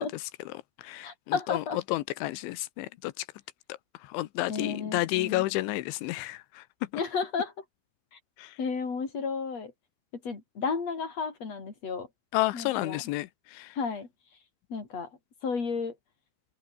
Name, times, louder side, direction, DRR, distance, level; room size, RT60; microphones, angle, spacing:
voice 1, 0.0-3.3 3.7-6.7 8.4-8.6 12.3-13.8, left 17 dB, 85° left, 3.3 m, -32 dB
voice 2, 1.0-1.8 4.5-5.4 7.0-7.5 8.1-8.2 8.6-9.7 10.2-12.1 12.5-13.0 13.8-14.1 14.7-15.1 15.4-16.0, left 5 dB, 35° left, 5.8 m, -32 dB
omnidirectional pair, 5.3 m